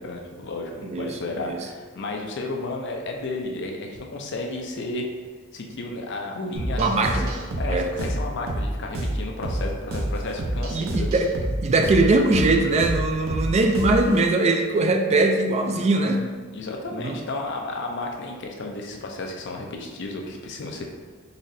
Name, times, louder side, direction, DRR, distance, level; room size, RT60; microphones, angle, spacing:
voice 1, 0.0-5.1 5.5-7.2 7.6-11.1 16.5-20.8, left 2 dB, 60° left, 2 dB, 0.5 m, -33 dB
voice 2, 0.9-1.7 6.8-7.4 7.7-7.9 10.7-11.3 11.6-16.2 16.9-17.2, right 2 dB, 30° right, 4 dB, 0.3 m, -21 dB
sound 1, 6.5-14.2, right 1 dB, 80° right, 0.6 m, -28 dB
4.1 x 3.0 x 2.6 m, 1.4 s
head